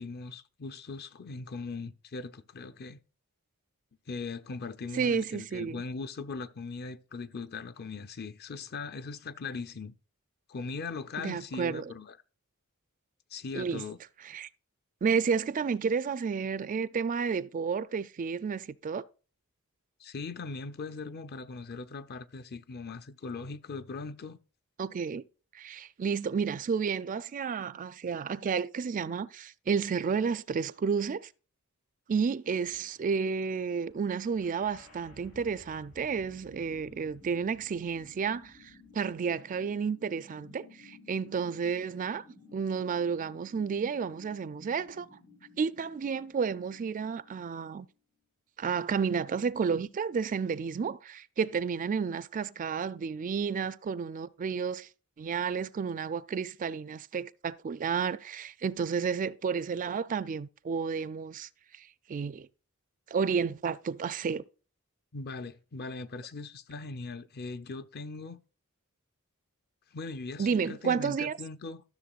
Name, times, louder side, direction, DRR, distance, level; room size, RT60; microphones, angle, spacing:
voice 1, 0.0-3.0 4.1-9.9 10.5-12.2 13.3-14.0 20.0-24.4 65.1-68.4 69.9-71.8, left 4 dB, 50° left, 0.6 m, -40 dB
voice 2, 4.9-5.8 11.2-11.8 13.5-13.8 14.3-14.5 15.0-19.0 24.8-25.2 25.5-31.3 32.1-42.2 42.5-45.1 45.6-47.9 48.6-54.9 55.2-62.5 63.1-64.4 70.4-71.4, right 6 dB, 40° right, 0.4 m, -31 dB
sound 1, 34.0-48.0, left 3 dB, 90° left, 5.4 m, -56 dB
13.0 x 6.6 x 2.4 m
head